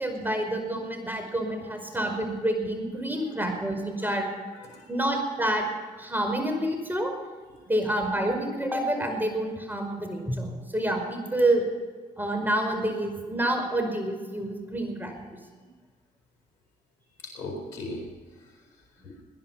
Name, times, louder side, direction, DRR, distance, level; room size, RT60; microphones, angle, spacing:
voice 1, 0.0-4.3 4.9-5.7 6.0-7.1 7.7-11.7 12.2-15.4, right 1 dB, 10° right, 4 dB, 5.2 m, -28 dB
voice 2, 4.0-4.3 4.5-4.9 7.5-7.6 17.2-19.2, left 2 dB, 90° left, 0 dB, 4.4 m, -41 dB
20.0 x 11.0 x 5.8 m, 1.5 s
hypercardioid pair, 45°, 20 cm